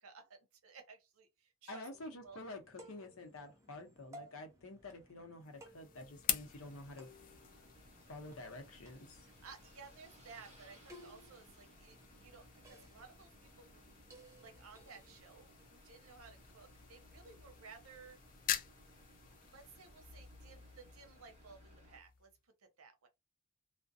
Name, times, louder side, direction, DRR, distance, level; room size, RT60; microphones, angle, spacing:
voice 1, 0.0-1.9 2.2-2.4 9.4-13.9 14.4-18.2 19.5-22.3 22.6-23.1, right 4 dB, 85° right, 0.8 m, -57 dB
voice 2, 1.7-7.1 8.1-9.3, left 2 dB, 80° left, 0.8 m, -49 dB
sound 1, 1.9-15.2, equal, 15° right, 0.6 m, -61 dB
sound 2, 5.4-22.4, left 10 dB, 40° left, 0.3 m, -47 dB
sound 3, 6.4-22.0, right 1 dB, 30° right, 0.9 m, -63 dB
2.4 x 2.2 x 2.6 m
head